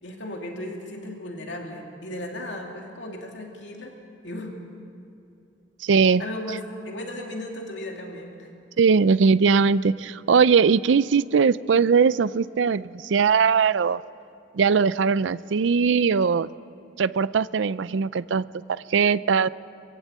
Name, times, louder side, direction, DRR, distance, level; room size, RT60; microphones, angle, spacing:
voice 1, 0.0-4.0 4.2-4.5 6.2-8.5, left 1 dB, 70° left, 1 dB, 2.7 m, -36 dB
voice 2, 5.8-6.2 8.8-14.0 14.5-16.5 17.0-19.5, right 5 dB, 70° right, 18 dB, 0.4 m, -20 dB
23.5 x 15.5 x 8.5 m, 2.5 s
head